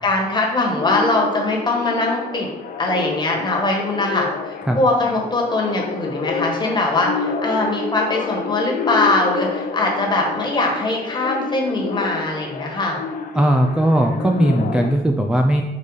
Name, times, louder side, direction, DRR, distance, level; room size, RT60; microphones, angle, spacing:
voice 1, 0.0-2.5 2.8-13.0, left 2 dB, 30° left, -1 dB, 1.4 m, -21 dB
sound 1, 0.6-14.9, left 5 dB, 60° left, 0.5 m, -29 dB
voice 2, 13.3-15.6, right 1 dB, 5° right, 3 dB, 0.3 m, -18 dB
5.4 x 4.0 x 4.8 m, 1.0 s
wide cardioid pair, 135°, 16 cm